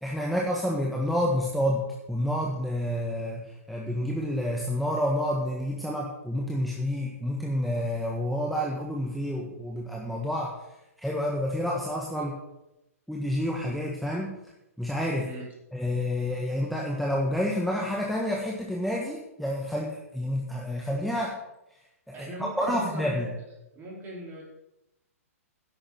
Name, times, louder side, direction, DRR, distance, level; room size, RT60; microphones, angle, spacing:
voice 1, 0.0-10.5 11.0-12.3 13.1-14.3 14.8-15.3 15.7-21.3 22.2-23.3, equal, ahead, -3 dB, 1.6 m, -29 dB
voice 2, 22.1-23.3 23.7-24.4, equal, 25° right, -3 dB, 4.8 m, -40 dB
11.0 x 7.0 x 7.8 m, 0.89 s
figure-of-eight pair, 115°, 8 cm